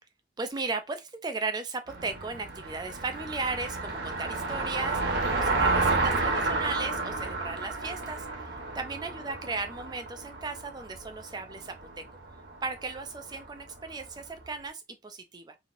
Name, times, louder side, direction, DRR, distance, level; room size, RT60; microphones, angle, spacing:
voice 1, 0.4-12.0 12.6-15.6, right 3 dB, 20° right, 0.3 m, -36 dB
Car passing by, 1.9-14.2, right 3 dB, 55° right, 0.9 m, -31 dB
2.9 x 2.7 x 2.5 m
head